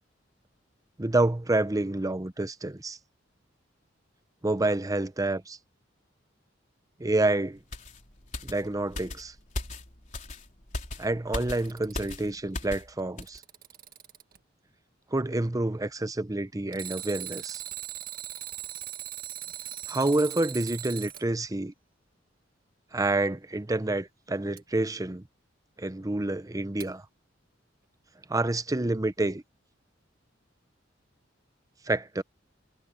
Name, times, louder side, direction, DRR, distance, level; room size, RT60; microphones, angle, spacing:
voice 1, 1.0-3.0 4.4-5.6 7.0-7.6 8.4-9.3 11.0-13.4 15.1-17.6 19.9-21.7 22.9-25.2 25.8-27.0 28.3-29.4 31.9-32.2, right 2 dB, 20° right, 0.7 m, -28 dB
sound 1, 7.7-12.9 13.2-13.4, left 2 dB, 40° left, 3.7 m, -38 dB
Alarm, 11.4-12.3 13.0-14.4 16.7-21.2 24.6-24.7 26.8-26.9, right 12 dB, 50° right, 1.7 m, -39 dB
head